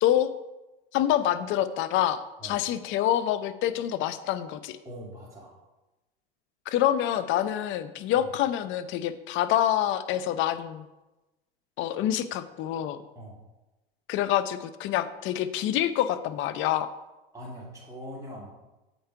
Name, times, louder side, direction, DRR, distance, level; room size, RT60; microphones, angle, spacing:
voice 1, 0.0-0.3 0.9-4.8 6.7-10.9 11.8-13.0 14.1-16.9, left 11 dB, 40° left, 12 dB, 0.6 m, -26 dB
voice 2, 4.8-5.6 8.1-8.3 13.1-13.4 17.3-18.5, equal, 10° right, -5 dB, 2.3 m, -42 dB
7.8 x 5.2 x 4.6 m, 1.0 s
hypercardioid pair, 95°, 30 cm